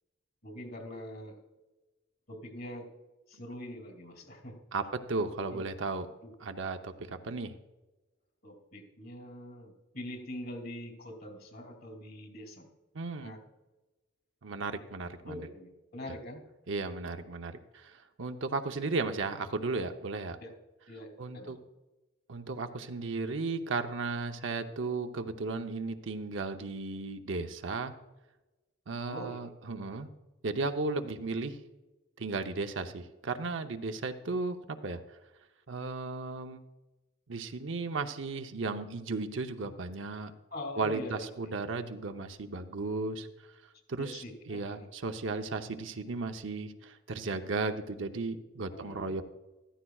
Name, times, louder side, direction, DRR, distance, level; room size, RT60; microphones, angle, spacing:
voice 1, 0.4-1.4 2.3-2.9 3.3-4.6 5.5-5.6 6.2-6.3 8.4-12.7 13.2-13.4 15.2-16.4 20.4-20.5 20.9-21.6 29.1-29.5 40.5-41.6 44.0-44.9 48.7-49.1, left 1 dB, 55° left, 3 dB, 2.8 m, -43 dB
voice 2, 5.1-6.1 6.4-7.6 12.9-13.3 14.4-15.5 16.7-20.4 21.2-21.6 22.3-27.9 28.9-30.1 30.4-31.6 32.2-35.0 35.7-36.6 37.3-40.3 40.8-43.3 43.9-49.2, right 3 dB, 70° right, 7 dB, 0.8 m, -35 dB
14.5 x 13.5 x 2.4 m, 1.1 s
head